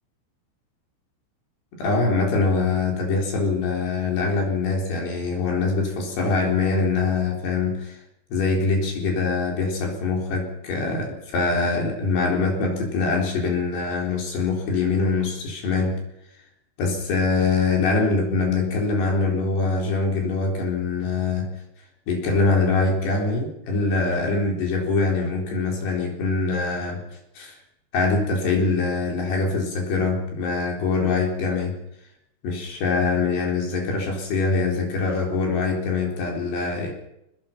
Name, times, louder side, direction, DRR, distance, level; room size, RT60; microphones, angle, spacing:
voice 1, 1.8-8.0 8.3-16.0 16.8-21.5 22.1-27.0 27.4-27.6 27.9-31.8 32.4-36.9, left 4 dB, 55° left, 0 dB, 5.9 m, -23 dB
26.0 x 19.5 x 5.9 m, 0.82 s
omnidirectional pair, 5.8 m